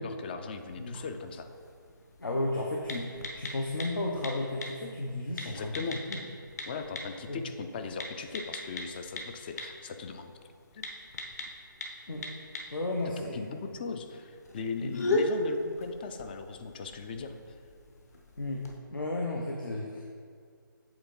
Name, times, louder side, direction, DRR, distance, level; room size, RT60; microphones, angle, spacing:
voice 1, 0.0-1.5 5.5-6.0 6.7-10.3 10.7-10.8 13.3-17.3, left 4 dB, 25° left, 7 dB, 0.4 m, -38 dB
sound 1, 0.5-18.8, left 2 dB, 45° left, 1.0 m, -39 dB
voice 2, 2.2-5.8 6.1-6.2 7.3-7.4 12.1-12.3 12.7-13.4 14.8-14.9 18.4-18.6 18.9-20.0, left 2 dB, 70° left, -1 dB, 0.9 m, -33 dB
8.0 x 3.9 x 5.3 m, 2.1 s
figure-of-eight pair, 150°, 11 cm